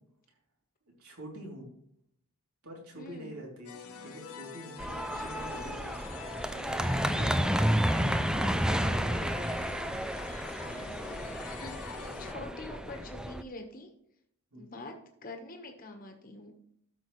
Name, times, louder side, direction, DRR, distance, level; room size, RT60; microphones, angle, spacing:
voice 1, 1.0-1.7 2.6-3.7 4.0-5.9 6.5-7.4 7.8-9.7 14.5-14.8, right 1 dB, 85° right, -1 dB, 3.1 m, -46 dB
voice 2, 3.0-3.3 5.1-5.8 7.0-7.4 11.4-13.9 14.5-16.5, left 2 dB, 40° left, 4 dB, 1.3 m, -45 dB
sound 1, 3.6-12.3, left 5 dB, 75° left, 1.0 m, -45 dB
sound 2, 4.8-13.4, equal, 5° right, 0.3 m, -31 dB
12.5 x 6.4 x 3.2 m, 0.72 s
head